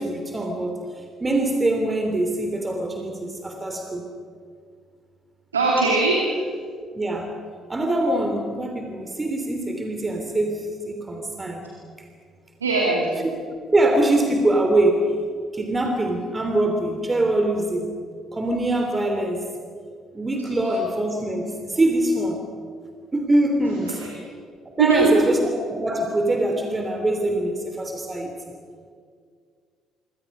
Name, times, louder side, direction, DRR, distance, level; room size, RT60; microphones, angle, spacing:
voice 1, 0.0-4.1 6.9-7.4 7.7-11.7 12.0-12.1 13.7-15.1 15.5-18.0 18.3-19.5 20.1-22.5 23.1-24.0 24.8-25.4 25.7-28.3, right 1 dB, 25° right, 4 dB, 3.1 m, -23 dB
voice 2, 5.5-6.3 12.6-13.1 24.0-24.1 24.8-25.2, right 4 dB, 85° right, -2 dB, 2.8 m, -19 dB
26.0 x 24.5 x 5.4 m, 2.1 s
figure-of-eight pair, 50°, 0 cm